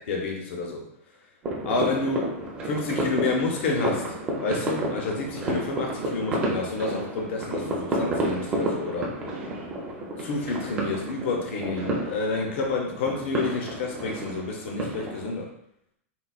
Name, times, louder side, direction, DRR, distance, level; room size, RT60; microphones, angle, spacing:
voice 1, 0.1-0.9 1.6-2.3 2.6-9.1 10.2-15.5, left 3 dB, 55° left, 0 dB, 0.5 m, -29 dB
sound 1, 1.4-15.3, right 1 dB, 15° right, 0.4 m, -31 dB
3.8 x 2.0 x 2.3 m, 0.72 s
supercardioid pair, 175°, 8 cm